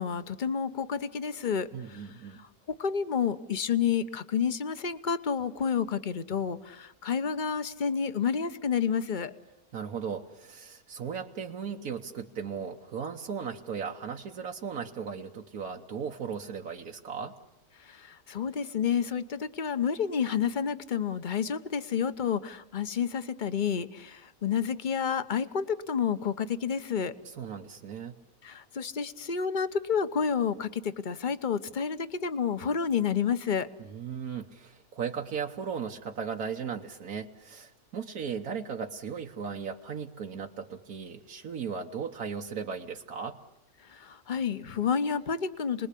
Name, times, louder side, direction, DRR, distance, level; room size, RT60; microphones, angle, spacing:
voice 1, 0.0-9.3 17.8-27.2 28.4-33.7 43.8-45.9, left 7 dB, 35° left, 12 dB, 1.1 m, -30 dB
voice 2, 1.7-2.4 9.7-17.4 27.2-28.2 33.8-43.4, right 6 dB, 85° right, 2 dB, 1.6 m, -37 dB
29.5 x 21.0 x 8.4 m, 0.90 s
omnidirectional pair, 1.5 m